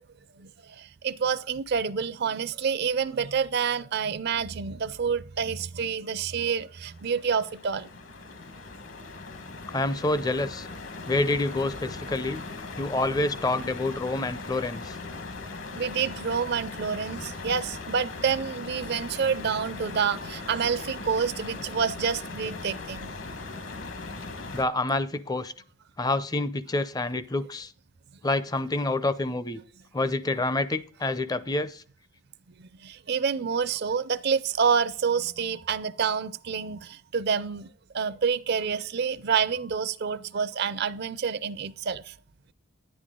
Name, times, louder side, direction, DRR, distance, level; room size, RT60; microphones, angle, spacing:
voice 1, 0.8-7.9 15.8-23.1 32.6-37.7 37.9-42.1, right 6 dB, 50° right, 0.4 m, -28 dB
sound 1, 6.7-24.6, left 3 dB, 65° left, 1.3 m, -39 dB
voice 2, 9.7-10.7 11.0-12.4 12.8-15.0 24.5-25.5 26.0-27.7 28.2-29.6 29.9-31.8, left 2 dB, 20° left, 0.5 m, -27 dB
10.5 x 10.0 x 3.7 m
head